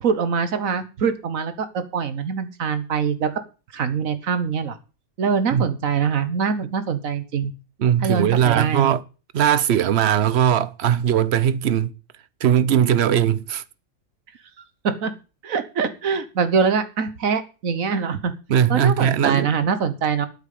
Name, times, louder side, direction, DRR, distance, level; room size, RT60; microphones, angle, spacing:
voice 1, 0.0-3.4 3.7-4.8 5.2-7.5 8.0-8.9 14.8-15.1 15.4-18.3 18.7-20.3, right 6 dB, 85° right, 1.6 m, -23 dB
voice 2, 7.8-9.0 9.3-11.9 12.4-13.6 18.5-19.5, right 9 dB, 55° right, 1.0 m, -19 dB
9.1 x 8.7 x 8.5 m
omnidirectional pair, 1.4 m